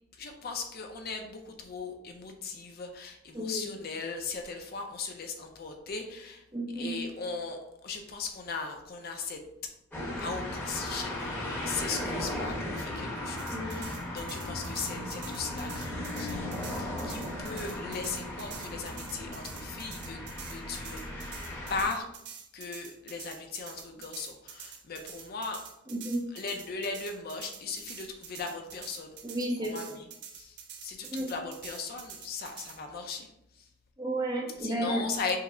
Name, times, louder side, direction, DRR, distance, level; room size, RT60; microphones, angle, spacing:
voice 1, 0.2-6.4 6.8-7.6 7.8-9.4 10.2-21.3 21.7-22.0 22.5-25.6 26.3-29.2 29.7-30.1 30.4-33.3 34.6-35.4, left 4 dB, 45° left, 4 dB, 0.5 m, -38 dB
voice 2, 3.3-3.8 6.5-7.0 13.5-13.9 25.9-26.2 29.2-30.0 31.1-31.3 34.0-35.1, right 1 dB, 20° right, 0 dB, 0.6 m, -32 dB
sound 1, 9.9-21.9, left 1 dB, 10° left, 1.0 m, -36 dB
sound 2, 13.4-32.8, right 7 dB, 55° right, 0.6 m, -47 dB
5.5 x 2.0 x 3.7 m, 0.83 s
head